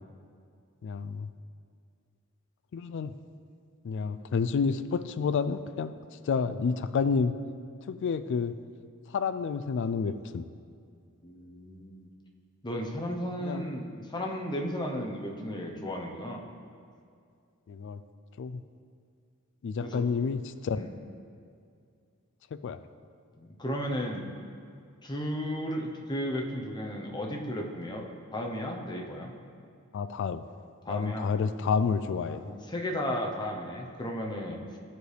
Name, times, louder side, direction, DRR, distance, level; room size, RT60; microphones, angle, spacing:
voice 1, 0.8-1.3 2.7-3.1 3.8-5.9 6.3-7.3 7.9-8.6 9.1-10.5 13.4-13.6 17.7-18.0 18.4-18.6 19.6-20.8 22.5-22.8 29.9-30.4 30.9-32.4, left 5 dB, 55° left, 12 dB, 0.3 m, -29 dB
voice 2, 11.2-12.1 12.6-16.4 19.8-20.0 20.7-20.9 23.3-24.2 25.0-28.1 28.3-29.3 30.8-31.3 32.3-34.8, equal, 20° left, 1 dB, 0.8 m, -34 dB
13.5 x 4.7 x 3.3 m, 2.3 s
head